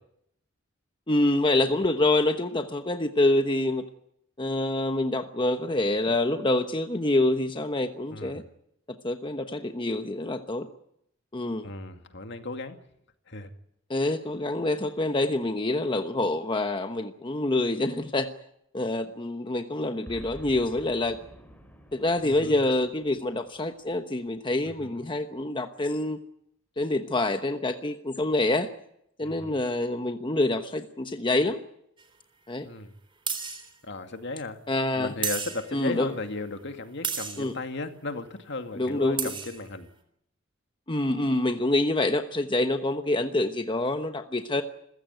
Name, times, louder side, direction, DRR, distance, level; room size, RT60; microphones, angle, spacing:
voice 1, 1.1-3.8 4.4-8.4 9.0-10.7 11.3-11.7 13.9-18.3 18.7-21.2 21.9-26.2 26.8-28.7 29.2-31.6 32.5-32.7 34.7-35.1 35.7-36.1 37.4-37.5 38.7-39.3 40.9-44.6, left 2 dB, 25° left, 7 dB, 1.1 m, -26 dB
voice 2, 8.1-8.4 11.6-12.8 13.3-13.5 22.2-22.6 24.8-25.0 29.2-29.6 32.6-32.9 33.8-34.6 35.0-39.9, left 3 dB, 60° left, 7 dB, 2.3 m, -36 dB
Boom, 20.1-24.5, equal, 10° left, 3.7 m, -50 dB
sound 1, 32.0-32.1 33.3-33.7 35.2-35.8 37.0-37.5 38.9-39.0 39.2-39.6, right 6 dB, 25° right, 3.6 m, -32 dB
28.0 x 16.0 x 9.3 m, 0.75 s
head